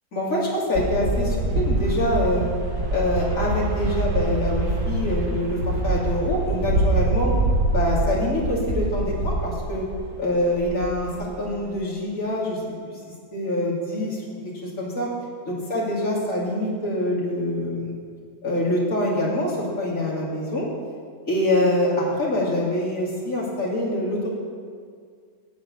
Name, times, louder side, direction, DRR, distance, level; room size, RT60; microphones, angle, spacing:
voice 1, 0.1-2.5 2.9-7.3 7.7-9.8 10.2-12.6 12.9-13.0 13.3-15.1 15.4-18.0 18.4-20.7 21.3-24.3, left 1 dB, 45° left, -5 dB, 2.7 m, -25 dB
sound 1, 0.8-10.1 10.5-11.7, right 2 dB, 50° right, 1.6 m, -25 dB
8.4 x 8.0 x 8.5 m, 2.1 s
omnidirectional pair, 1.9 m